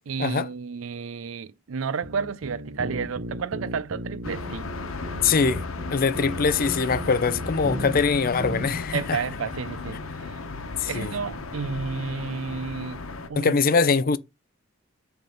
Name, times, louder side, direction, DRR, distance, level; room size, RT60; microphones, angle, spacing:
voice 1, 0.1-4.7 8.9-10.4 10.9-13.6, right 5 dB, 75° right, 0.5 m, -31 dB
sound 1, 2.0-8.1 8.4-8.7, right 1 dB, 45° right, 0.9 m, -35 dB
sound 2, 4.2-13.3, left 3 dB, 90° left, 1.1 m, -35 dB
voice 2, 5.2-5.6 5.9-9.2 10.8-11.1 13.4-14.2, left 5 dB, 45° left, 0.5 m, -23 dB
7.6 x 3.5 x 5.2 m
head